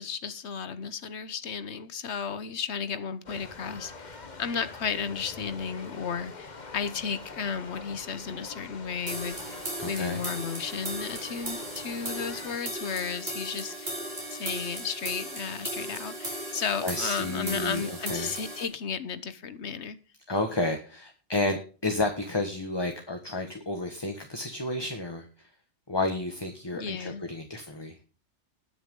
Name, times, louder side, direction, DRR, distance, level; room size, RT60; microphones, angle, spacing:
voice 1, 0.0-14.0 14.3-20.0 26.7-27.2, left 6 dB, 70° left, 13 dB, 1.3 m, -34 dB
sound 1, 3.3-12.6, left 3 dB, 40° left, 1.4 m, -44 dB
sound 2, 9.1-18.7, right 1 dB, 55° right, 4.4 m, -37 dB
voice 2, 9.8-10.2 16.8-18.3 20.3-25.5 25.9-28.0, left 2 dB, 20° left, 4 dB, 1.5 m, -31 dB
20.0 x 6.9 x 3.8 m, 0.37 s
omnidirectional pair, 1.2 m